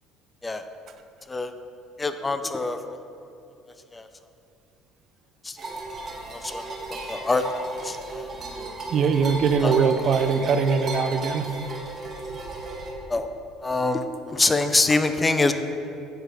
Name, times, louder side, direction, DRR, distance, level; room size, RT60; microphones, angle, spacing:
voice 1, 2.0-2.8 3.9-4.1 5.4-5.6 6.3-6.6 6.9-7.4 7.8-8.3 9.6-9.7 13.1-13.3 13.6-15.5, left 3 dB, 15° left, 9 dB, 0.5 m, -24 dB
sound 1, 5.6-12.9, right 2 dB, 35° right, 1.6 m, -35 dB
voice 2, 8.9-11.5, right 5 dB, 50° right, 8 dB, 0.6 m, -22 dB
8.1 x 6.4 x 4.8 m, 2.6 s
cardioid pair, 110°, 0 cm